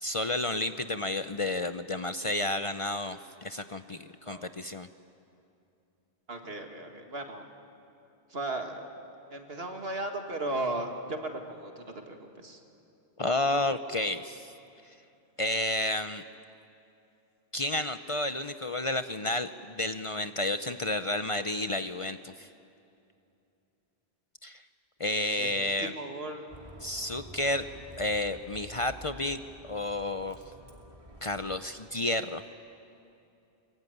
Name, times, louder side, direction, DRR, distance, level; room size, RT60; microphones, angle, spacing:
voice 1, 0.0-4.9 13.2-14.5 15.4-16.2 17.5-22.5 24.4-24.6 25.0-25.9 26.8-27.7 28.0-30.4 31.2-32.4, left 1 dB, 35° left, 10 dB, 0.6 m, -31 dB
voice 2, 6.3-7.4 8.3-8.9 9.3-12.6 25.4-26.4, right 2 dB, 75° right, 4 dB, 2.3 m, -36 dB
Bus, 26.5-31.6, equal, 35° right, 2.6 m, -49 dB
23.5 x 22.5 x 9.3 m, 2.7 s
omnidirectional pair, 1.0 m